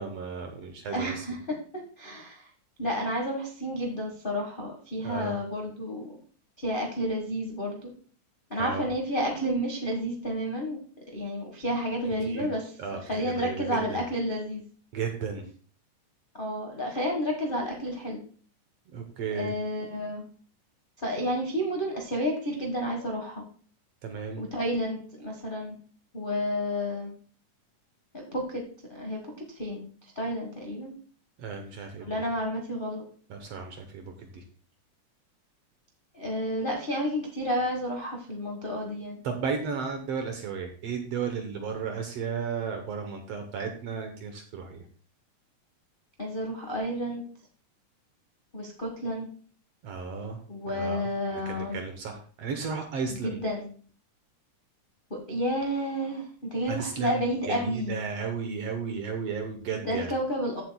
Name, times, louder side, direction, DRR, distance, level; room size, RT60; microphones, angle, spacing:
voice 1, 0.0-1.3 5.0-5.4 8.5-8.9 12.3-12.5 12.8-14.0 14.9-15.5 18.9-19.5 24.0-24.4 31.4-32.1 33.3-34.4 39.2-44.8 49.8-53.4 56.7-60.1, right 6 dB, 65° right, 5 dB, 1.7 m, -34 dB
voice 2, 0.9-2.5 2.8-6.1 6.6-7.9 8.5-10.8 11.1-12.6 13.1-14.6 16.3-18.2 19.3-20.2 21.0-23.4 24.4-25.8 26.1-27.1 28.1-28.6 28.9-29.2 29.5-29.8 30.1-30.9 32.0-33.0 36.1-39.2 46.2-47.2 48.5-49.3 50.5-51.8 53.1-53.7 55.1-58.0 59.8-60.6, equal, 45° left, 0 dB, 0.6 m, -31 dB
15.0 x 7.6 x 2.3 m, 0.42 s
omnidirectional pair, 3.7 m